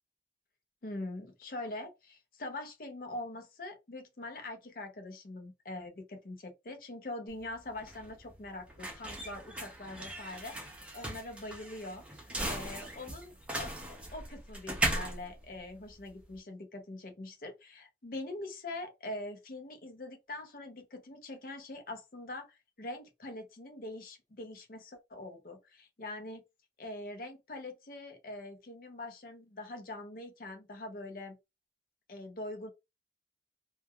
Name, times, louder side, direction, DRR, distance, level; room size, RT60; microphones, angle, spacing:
voice 1, 0.8-26.4 26.8-31.4 32.1-32.7, left 2 dB, 50° left, 0.6 m, -43 dB
sound 1, 7.3-16.4, right 1 dB, 5° right, 0.6 m, -38 dB
3.1 x 2.2 x 2.2 m
head